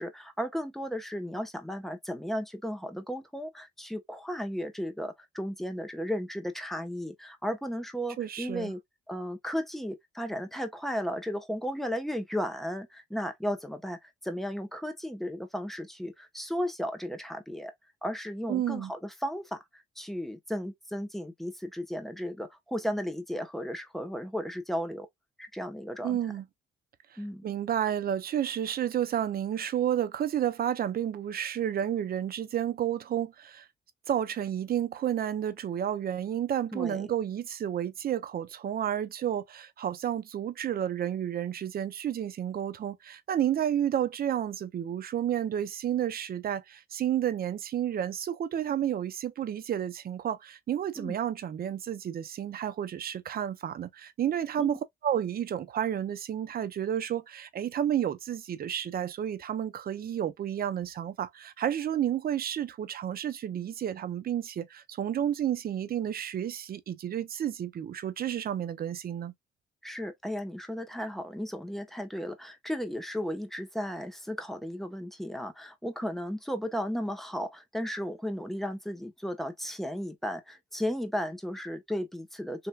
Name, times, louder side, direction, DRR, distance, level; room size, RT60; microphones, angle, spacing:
voice 1, 0.0-8.8 9.1-17.7 18.0-25.1 25.4-26.2 27.2-27.4 36.7-37.1 51.0-51.1 54.6-54.8 69.8-82.7, equal, ahead, 0.9 m, -35 dB
voice 2, 8.2-8.7 18.5-18.9 26.0-26.5 27.4-33.7 34.1-69.3, right 10 dB, 50° right, 0.6 m, -31 dB
3.3 x 2.7 x 2.2 m
cardioid pair, 90°, 20 cm